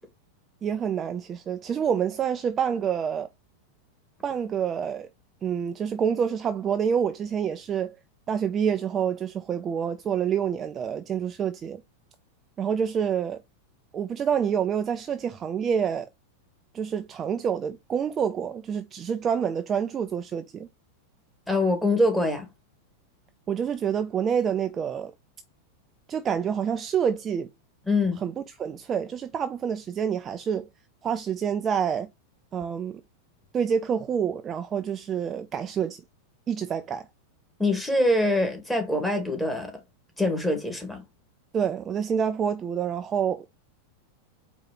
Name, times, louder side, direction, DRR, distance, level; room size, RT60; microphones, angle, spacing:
voice 1, 0.6-3.3 4.2-5.1 5.4-8.0 8.3-11.8 12.6-13.4 13.9-16.1 16.7-20.7 23.5-25.1 26.1-27.5 28.2-30.7 31.0-32.1 32.5-33.0 33.5-36.0 36.5-37.1 41.5-43.6, right 7 dB, 25° right, 0.4 m, -27 dB
voice 2, 21.5-22.5 27.8-28.2 37.6-39.7 40.2-41.0, left 1 dB, 5° left, 1.8 m, -24 dB
4.7 x 2.9 x 3.7 m
figure-of-eight pair, 90°, 0 cm